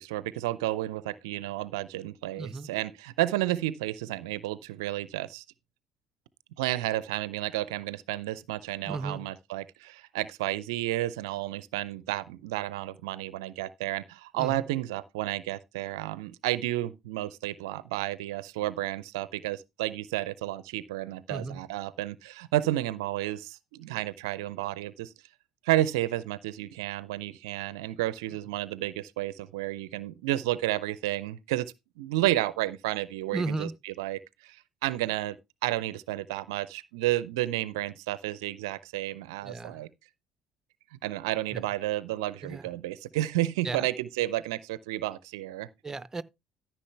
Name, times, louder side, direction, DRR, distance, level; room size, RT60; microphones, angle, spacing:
voice 1, 0.0-5.4 6.6-25.1 25.6-35.4 35.6-39.9 41.0-45.7, right 15 dB, 75° right, 0.5 m, -31 dB
voice 2, 2.3-2.7 8.8-9.3 14.4-14.7 21.3-21.6 33.3-33.7 39.4-39.8 41.5-41.7 42.4-42.7 43.6-43.9 45.8-46.2, right 3 dB, 20° right, 0.7 m, -35 dB
13.5 x 6.1 x 3.3 m
figure-of-eight pair, 55°, 2 cm